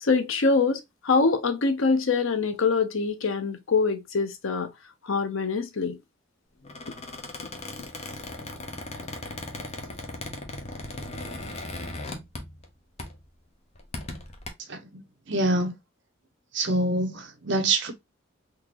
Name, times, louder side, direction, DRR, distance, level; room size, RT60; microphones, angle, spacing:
voice 1, 0.0-4.7 5.0-6.0, left 4 dB, 75° left, 0.7 m, -24 dB
Squeak, 6.6-12.7 13.0-13.3 13.7-14.5, left 2 dB, 30° left, 0.7 m, -38 dB
voice 2, 14.7-15.7 16.5-17.9, right 2 dB, 60° right, 0.8 m, -26 dB
3.8 x 2.9 x 2.8 m
head